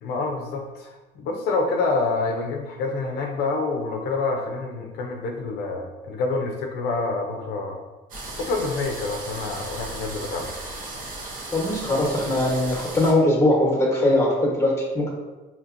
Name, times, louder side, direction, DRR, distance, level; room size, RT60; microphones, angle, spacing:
voice 1, 0.0-7.8 8.4-10.6, left 3 dB, 75° left, 2 dB, 0.5 m, -27 dB
sound 1, 8.1-13.1, right 2 dB, 55° right, 0.9 m, -36 dB
voice 2, 11.5-15.1, left 1 dB, 15° left, -3 dB, 1.1 m, -21 dB
4.3 x 2.9 x 2.5 m, 1.2 s
cardioid pair, 110°, 17 cm